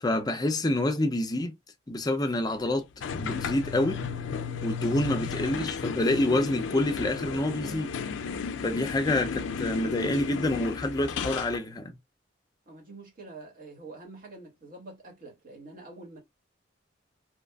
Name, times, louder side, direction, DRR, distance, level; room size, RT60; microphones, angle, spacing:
voice 1, 0.0-1.5 1.9-2.9 3.2-4.0 4.6-7.9 8.6-12.0, left 1 dB, 20° left, 0.4 m, -27 dB
sound 1, 3.0-11.6, left 5 dB, 80° left, 0.4 m, -33 dB
voice 2, 12.7-16.2, right 2 dB, 50° right, 1.4 m, -46 dB
2.9 x 2.4 x 2.2 m
head